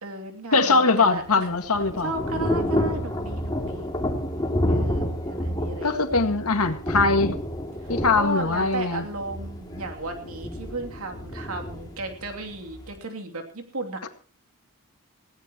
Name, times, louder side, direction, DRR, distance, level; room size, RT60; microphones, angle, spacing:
voice 1, 0.0-1.5 2.0-3.9 4.6-6.0 7.8-14.0, right 2 dB, 75° right, 4 dB, 2.9 m, -34 dB
voice 2, 0.5-2.1 5.8-7.4 7.9-9.1, left 3 dB, 90° left, 7 dB, 1.9 m, -21 dB
Thunder / Rain, 1.0-12.9, left 1 dB, 20° left, 2.6 m, -29 dB
19.0 x 17.0 x 3.0 m, 0.41 s
head